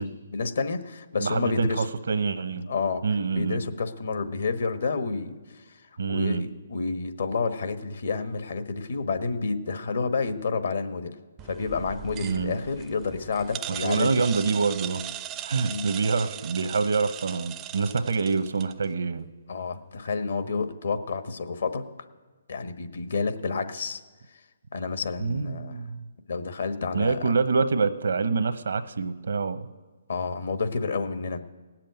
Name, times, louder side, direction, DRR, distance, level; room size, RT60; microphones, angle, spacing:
voice 1, 0.0-1.9 2.7-3.0 3.3-5.8 6.1-11.1 11.4-14.1 15.7-15.9 19.5-21.8 22.5-24.0 24.7-25.9 26.3-27.3 30.1-31.4, left 4 dB, 70° left, 8 dB, 1.3 m, -29 dB
voice 2, 1.2-2.7 3.0-3.6 6.0-6.4 12.2-12.5 13.7-15.2 15.4-19.3 25.2-26.0 26.9-29.7, right 4 dB, 75° right, 11 dB, 0.9 m, -26 dB
sound 1, 11.4-18.9, right 12 dB, 20° right, 0.4 m, -39 dB
17.5 x 7.5 x 9.4 m, 1.3 s
hypercardioid pair, 150°, 0 cm